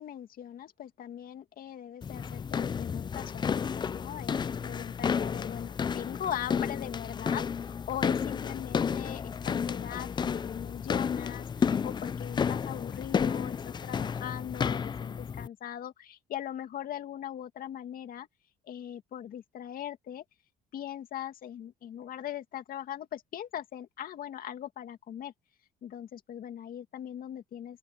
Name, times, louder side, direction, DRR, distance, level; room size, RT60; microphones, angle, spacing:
voice 1, 0.0-18.3 18.7-20.2 20.7-25.3 25.8-27.8, left 10 dB, 60° left, 2.3 m, -40 dB
sound 1, 2.0-15.5, left 6 dB, 25° left, 0.4 m, -32 dB
open air
cardioid pair, 110°, 17 cm